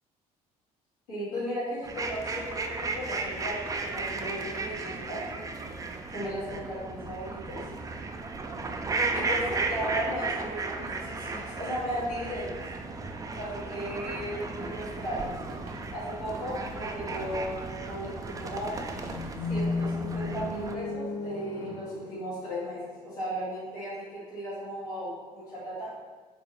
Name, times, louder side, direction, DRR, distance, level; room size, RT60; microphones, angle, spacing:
voice 1, 1.1-5.2 6.1-7.7 9.1-12.6 13.3-15.3 15.9-18.7 19.5-25.9, equal, 80° left, -9 dB, 1.4 m, -36 dB
sound 1, 1.8-20.8, right 3 dB, 20° right, 0.4 m, -35 dB
sound 2, 14.3-19.6, right 2 dB, 50° right, 0.8 m, -48 dB
sound 3, 19.1-23.2, left 3 dB, 25° left, 0.7 m, -34 dB
3.6 x 3.1 x 2.9 m, 1.4 s
figure-of-eight pair, 55°, 19 cm